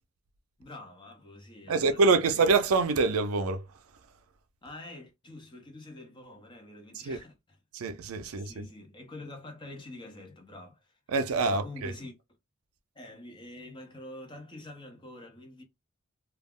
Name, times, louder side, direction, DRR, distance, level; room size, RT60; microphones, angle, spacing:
voice 1, 0.6-2.4 4.6-7.6 8.2-11.0 11.4-12.1 12.9-15.6, left 2 dB, 20° left, 0.7 m, -46 dB
voice 2, 1.7-3.6 7.0-7.2 7.7-8.6 11.1-11.9, right 4 dB, 75° right, 0.4 m, -25 dB
2.3 x 2.0 x 3.4 m
head